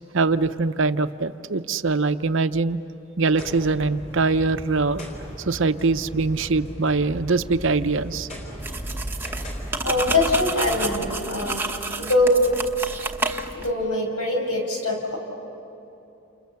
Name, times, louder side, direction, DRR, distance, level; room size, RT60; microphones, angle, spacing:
voice 1, 0.1-2.8 3.2-5.1 5.5-8.3, right 3 dB, 55° right, 11 dB, 0.7 m, -23 dB
sound 1, 3.3-11.2, equal, 30° left, 4.5 m, -38 dB
sound 2, 8.6-13.7, right 2 dB, 10° right, 0.8 m, -30 dB
voice 2, 9.8-11.6 12.0-12.5 13.5-15.2, left 1 dB, 85° left, 2 dB, 5.9 m, -22 dB
29.0 x 29.0 x 7.0 m, 2.8 s
head